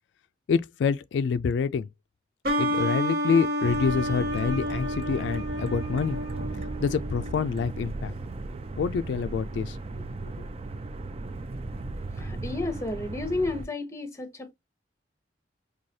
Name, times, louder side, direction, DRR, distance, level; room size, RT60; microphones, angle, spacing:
voice 1, 0.5-1.9 2.6-6.2 6.8-8.1 8.8-9.8 10.4-10.5, left 6 dB, 90° left, 0.3 m, -27 dB
sound 1, 2.4-7.9, equal, 60° right, 1.3 m, -30 dB
sound 2, 3.6-13.7, right 2 dB, 35° right, 0.4 m, -36 dB
voice 2, 12.1-14.5, left 2 dB, 15° left, 0.8 m, -31 dB
4.7 x 2.3 x 2.7 m
head